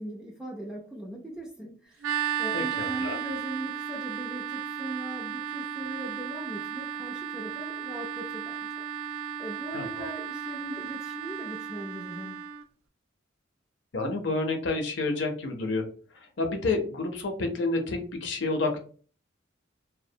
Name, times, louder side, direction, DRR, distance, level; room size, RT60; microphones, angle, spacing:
voice 1, 0.0-8.7 9.0-9.1 9.4-12.4, right 1 dB, 5° right, -1 dB, 0.4 m, -39 dB
sound 1, 2.0-12.6, right 8 dB, 80° right, 0.3 m, -34 dB
voice 2, 2.5-3.2 9.7-10.1 13.9-15.8 16.1-18.8, left 3 dB, 60° left, 4 dB, 0.5 m, -29 dB
2.3 x 2.1 x 2.6 m, 0.41 s
head